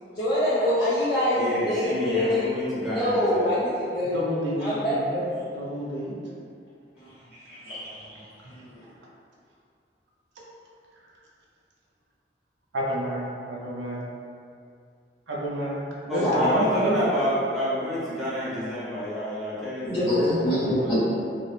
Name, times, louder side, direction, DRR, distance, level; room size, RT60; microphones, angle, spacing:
voice 1, 0.1-2.6 2.8-5.4 7.0-8.6 16.2-16.6 19.8-21.0, left 1 dB, 50° left, -17 dB, 1.0 m, -25 dB
voice 2, 1.4-3.5 16.1-20.1, equal, ahead, -12 dB, 0.7 m, -29 dB
voice 3, 4.0-5.2 5.6-6.2 10.4-10.5 12.7-14.0 15.3-17.0 20.5-21.0, equal, 90° right, -4 dB, 0.4 m, -30 dB
2.4 x 2.0 x 3.1 m, 2.4 s
head